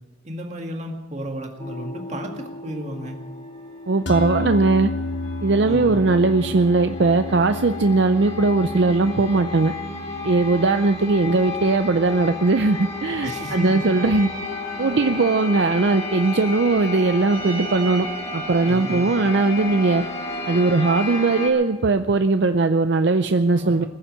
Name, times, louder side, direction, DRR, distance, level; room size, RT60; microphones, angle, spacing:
voice 1, 0.2-3.2 5.6-6.0 13.2-13.9 18.7-19.2 23.6-23.9, equal, 35° right, 3 dB, 1.9 m, -32 dB
sound 1, 1.6-21.5, left 2 dB, 30° left, 2.6 m, -33 dB
voice 2, 3.9-4.9 5.4-9.7 10.2-14.3 14.8-18.1 18.3-20.0 20.5-23.8, right 3 dB, 60° right, 8 dB, 0.5 m, -19 dB
sound 2, 4.1-14.5, left 2 dB, 70° left, 1.1 m, -33 dB
21.0 x 7.3 x 8.6 m, 1.2 s
head